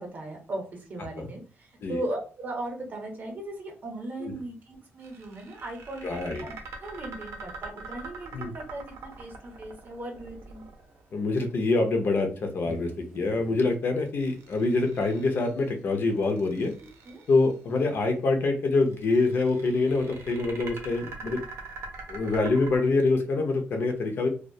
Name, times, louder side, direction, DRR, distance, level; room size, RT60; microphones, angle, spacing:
voice 1, 0.0-6.5 6.8-10.6 17.0-17.2, right 1 dB, 40° right, 2 dB, 0.7 m, -38 dB
sound 1, 5.0-11.2 14.1-15.6 16.2-17.5 18.8-22.8, right 3 dB, 85° right, 0.6 m, -43 dB
voice 2, 6.0-6.4 8.3-8.5 11.1-16.7 17.3-21.4 22.1-24.3, left 3 dB, 50° left, 5 dB, 0.5 m, -25 dB
sound 2, 12.6-13.7 15.0-15.1 15.7-15.8, right 1 dB, 10° right, 0.4 m, -45 dB
2.2 x 2.1 x 2.6 m, 0.38 s
wide cardioid pair, 155°, 5 cm